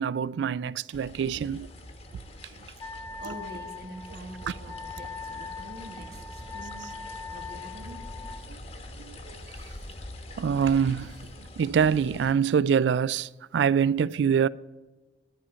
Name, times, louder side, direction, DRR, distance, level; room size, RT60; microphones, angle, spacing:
voice 1, 0.0-1.7 10.4-11.1 11.6-14.5, right 7 dB, 75° right, 0.3 m, -24 dB
sound 1, 0.9-12.3, left 1 dB, 35° left, 1.0 m, -44 dB
Wind instrument woodwind instrument, 2.8-8.4, left 4 dB, 15° left, 0.6 m, -41 dB
voice 2, 3.2-6.9 7.3-8.1, right 1 dB, 60° right, 1.4 m, -45 dB
11.0 x 5.7 x 8.8 m
head